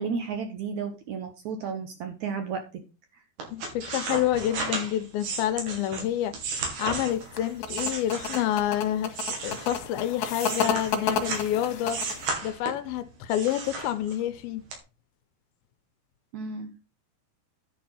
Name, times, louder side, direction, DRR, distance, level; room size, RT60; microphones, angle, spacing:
voice 1, 0.0-2.8 3.1-3.2 16.3-16.8, right 5 dB, 65° right, 2.0 m, -33 dB
sound 1, 3.4-8.7 9.1-11.5 11.9-12.9 13.3-14.3 14.7-14.8, right 4 dB, 80° right, 4.7 m, -34 dB
voice 2, 3.5-6.4 6.8-12.1 12.4-14.6, left 12 dB, 80° left, 2.4 m, -28 dB
sound 2, 7.1-12.3, left 6 dB, 60° left, 2.6 m, -31 dB
11.0 x 5.2 x 5.6 m
omnidirectional pair, 4.5 m